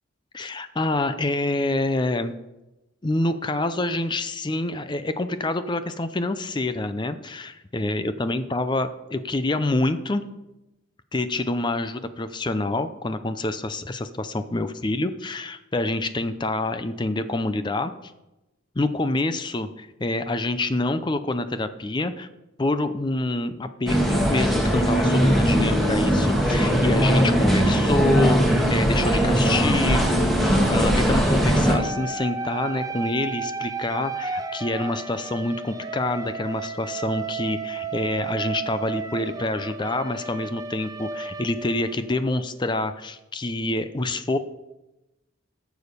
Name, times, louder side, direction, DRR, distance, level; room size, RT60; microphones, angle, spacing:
voice 1, 0.3-2.3 3.0-10.2 11.1-18.1 18.8-22.3 22.6-44.4, left 2 dB, 20° left, 11 dB, 0.5 m, -27 dB
sound 1, 23.9-31.8, equal, ahead, 2.0 m, -20 dB
sound 2, 30.6-42.4, right 4 dB, 20° right, 0.7 m, -33 dB
13.5 x 7.1 x 6.7 m, 0.99 s
head